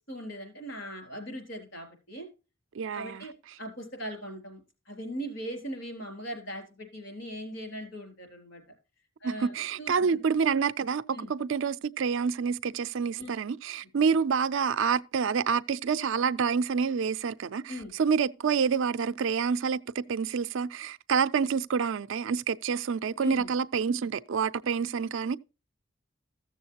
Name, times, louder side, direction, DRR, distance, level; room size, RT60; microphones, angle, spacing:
voice 1, 0.1-2.3 2.9-3.3 3.6-8.6 9.2-10.2 11.1-11.3 13.2-13.3 17.7-17.9 23.2-23.5, equal, 60° left, 4.0 m, -39 dB
voice 2, 2.8-3.2 9.2-17.7 18.0-25.4, right 6 dB, 65° right, 0.4 m, -28 dB
14.5 x 7.1 x 2.8 m
head